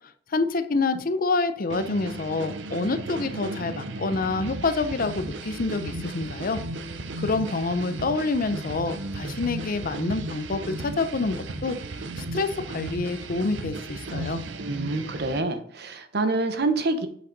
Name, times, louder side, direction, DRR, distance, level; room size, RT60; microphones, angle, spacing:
voice 1, 0.3-6.6 7.2-11.8 12.2-14.4, left 3 dB, 50° left, 10 dB, 0.6 m, -27 dB
sound 1, 1.7-15.4, right 2 dB, 80° right, 0.7 m, -35 dB
voice 2, 14.6-17.1, right 2 dB, 60° right, 8 dB, 1.0 m, -26 dB
7.3 x 5.7 x 4.0 m, 0.63 s
head